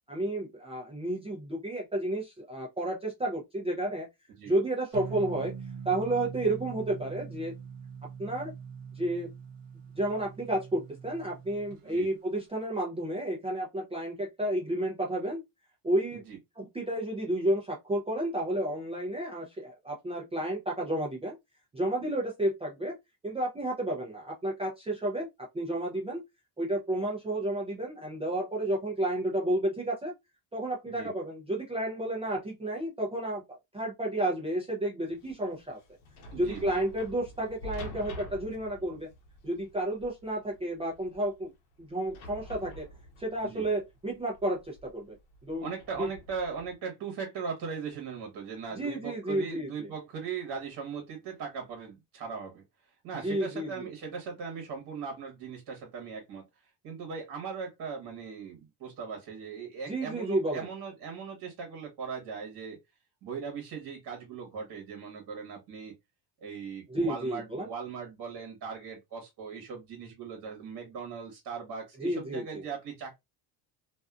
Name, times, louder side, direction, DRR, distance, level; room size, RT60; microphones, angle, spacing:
voice 1, 0.1-4.1 4.5-5.5 5.9-7.5 8.2-8.5 8.9-9.3 10.0-15.4 15.8-16.2 16.6-21.4 21.7-23.0 23.2-25.3 25.5-26.2 26.6-30.1 30.5-35.8 36.3-39.1 39.4-41.5 41.8-42.9 43.2-45.2 45.4-45.7 46.0-46.1 48.7-49.9 53.2-53.9 59.9-60.7 66.9-67.7 72.0-72.6, right 1 dB, 15° right, 0.5 m, -31 dB
sound 1, 4.9-11.8, right 6 dB, 70° right, 0.8 m, -43 dB
sound 2, 35.1-46.7, left 1 dB, 70° left, 0.9 m, -47 dB
voice 2, 36.3-36.6 43.4-43.7 45.6-52.6 53.0-62.8 63.2-65.9 66.4-73.1, right 6 dB, 45° right, 1.1 m, -39 dB
2.5 x 2.3 x 2.3 m
cardioid pair, 120°, 46 cm